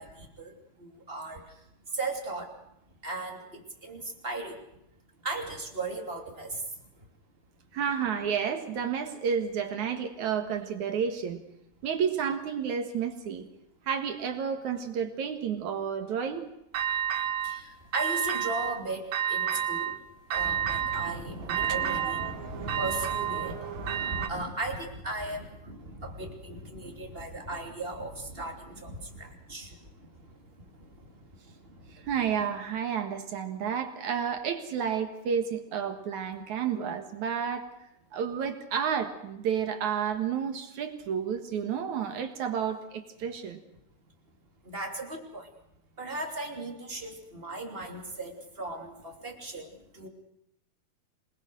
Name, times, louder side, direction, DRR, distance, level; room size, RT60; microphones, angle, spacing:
voice 1, 0.0-1.4 1.9-2.5 3.0-4.6 5.2-6.6 17.4-20.0 20.3-29.7 44.6-45.5 46.0-50.1, right 2 dB, 15° right, 3 dB, 2.8 m, -37 dB
voice 2, 7.7-11.4 11.8-13.5 13.9-16.5 32.0-37.7 38.1-43.6, right 7 dB, 60° right, 7 dB, 2.7 m, -31 dB
sound 1, 16.7-17.6 17.9-18.8 19.1-20.0 20.3-24.3, right 9 dB, 85° right, 3.3 m, -30 dB
26.5 x 20.5 x 6.4 m, 0.82 s
omnidirectional pair, 4.1 m